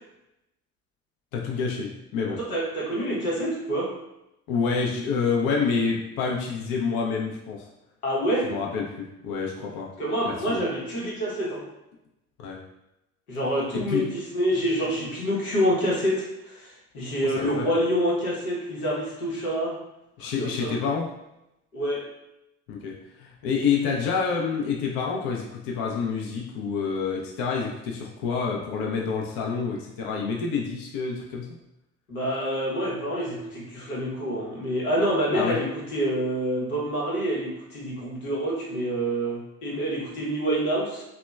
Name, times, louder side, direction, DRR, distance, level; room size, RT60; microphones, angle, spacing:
voice 1, 1.3-2.4 4.5-7.7 8.4-9.9 10.3-10.6 12.4-12.6 13.7-14.1 17.2-17.7 20.2-21.1 22.7-31.6 35.3-35.6, left 5 dB, 55° left, -1 dB, 0.6 m, -28 dB
voice 2, 2.4-3.9 8.0-8.5 10.0-11.6 13.3-19.8 20.4-20.8 21.7-22.0 32.1-41.0, equal, 85° left, -5 dB, 0.9 m, -27 dB
2.8 x 2.1 x 2.2 m, 0.89 s
hypercardioid pair, 55°, 43 cm